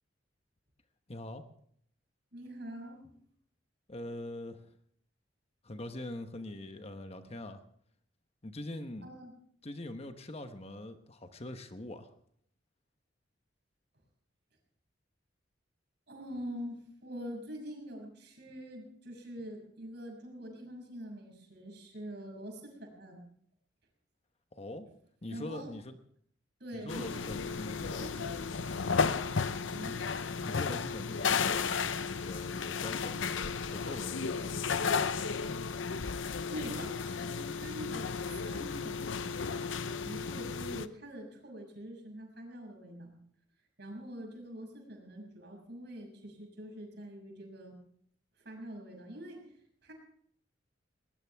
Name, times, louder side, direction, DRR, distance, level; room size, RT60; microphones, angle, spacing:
voice 1, 1.1-1.4 3.9-4.7 5.6-7.6 8.4-9.1 9.6-12.1 24.5-24.9 25.2-26.0 26.7-28.1 30.4-34.6, left 1 dB, 35° left, 8 dB, 1.1 m, -43 dB
voice 2, 2.3-3.1 9.0-9.3 16.1-23.2 25.3-25.7 26.6-27.3 28.0-28.3 29.7-30.1 36.5-38.1 38.4-39.3 39.8-43.2 43.8-47.8 48.4-49.6 49.8-49.9, equal, 60° right, 1 dB, 6.4 m, -45 dB
sound 1, 26.9-40.9, left 5 dB, 85° left, 0.7 m, -34 dB
21.0 x 19.0 x 3.5 m, 0.64 s
head